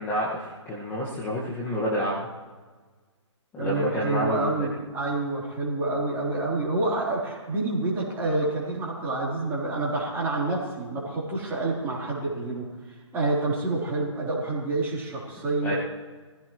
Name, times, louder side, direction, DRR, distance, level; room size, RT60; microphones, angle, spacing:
voice 1, 0.0-2.3 3.5-4.5 15.6-15.7, equal, 10° left, -6 dB, 1.8 m, -29 dB
voice 2, 3.6-15.7, right 2 dB, 15° right, -5 dB, 3.9 m, -28 dB
21.5 x 15.5 x 3.2 m, 1.4 s
figure-of-eight pair, 140°, 16 cm